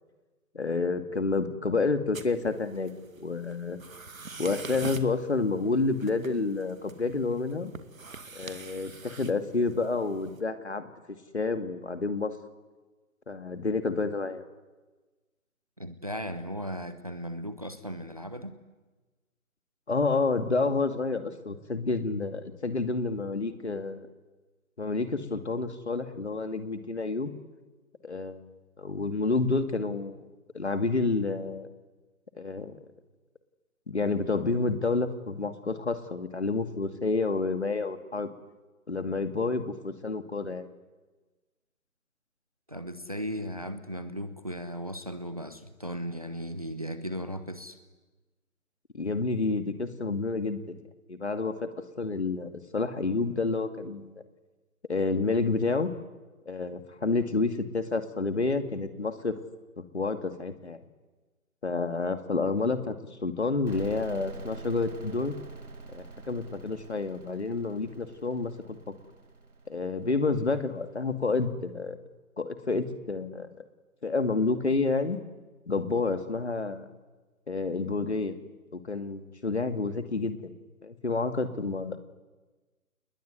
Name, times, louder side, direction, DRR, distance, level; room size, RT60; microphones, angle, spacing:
voice 1, 0.5-3.8 4.4-7.7 8.3-10.8 11.3-12.3 13.3-14.4 19.9-24.1 24.8-27.3 28.0-28.5 28.8-30.2 30.5-31.7 32.4-32.7 33.9-38.3 38.9-40.7 48.9-50.8 51.1-51.7 52.0-54.2 54.9-55.9 56.5-59.4 59.9-60.8 61.6-62.9 63.2-65.3 65.9-68.9 69.7-72.0 72.4-73.5 74.0-75.2 75.7-76.9 77.5-78.4 78.8-80.5 80.8-82.0, left 3 dB, 45° left, 9 dB, 2.4 m, -29 dB
sound 1, 2.1-10.4, right 3 dB, 65° right, 2.4 m, -45 dB
voice 2, 15.8-18.5 42.7-47.8, equal, 25° right, 11 dB, 1.1 m, -36 dB
sound 2, 63.7-71.2, right 3 dB, 80° right, 5.6 m, -45 dB
28.5 x 21.0 x 9.7 m, 1.2 s
figure-of-eight pair, 180°, 44 cm